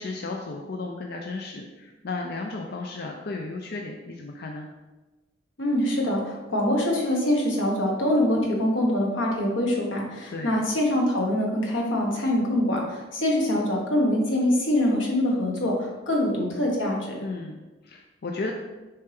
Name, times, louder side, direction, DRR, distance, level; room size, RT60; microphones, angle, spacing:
voice 1, 0.0-4.7 10.3-10.6 17.2-18.5, left 3 dB, 55° left, 2 dB, 0.5 m, -34 dB
voice 2, 5.6-17.2, left 1 dB, 85° left, -2 dB, 1.5 m, -24 dB
6.6 x 4.4 x 3.5 m, 1.2 s
head